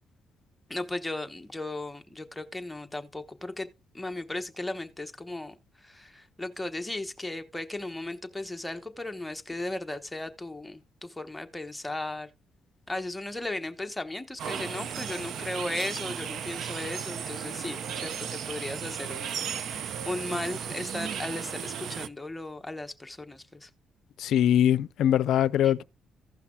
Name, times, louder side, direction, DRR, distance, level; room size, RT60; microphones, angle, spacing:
voice 1, 0.7-3.7 3.9-5.5 5.8-12.3 12.9-19.4 19.6-23.7 25.6-25.7, left 2 dB, 10° left, 1.0 m, -36 dB
sound 1, 14.4-22.1, right 8 dB, 70° right, 0.5 m, -35 dB
voice 2, 24.2-25.8, left 10 dB, 80° left, 0.4 m, -22 dB
16.0 x 5.8 x 2.3 m
cardioid pair, 105°, 0 cm